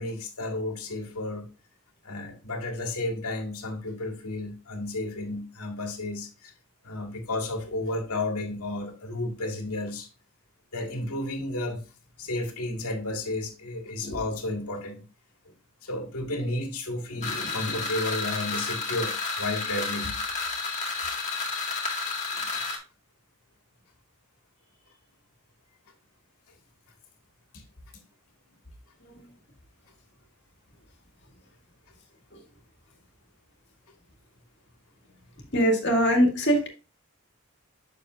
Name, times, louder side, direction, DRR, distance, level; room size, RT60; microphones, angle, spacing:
voice 1, 0.0-1.5 2.0-6.5 6.8-10.1 10.7-11.8 12.2-15.0 15.8-20.2 22.4-22.5, left 2 dB, 90° left, 2.0 m, -32 dB
sound 1, 17.2-22.8, left 4 dB, 30° left, 1.8 m, -31 dB
voice 2, 35.5-36.7, equal, 50° left, 2.0 m, -21 dB
7.9 x 6.5 x 2.5 m
head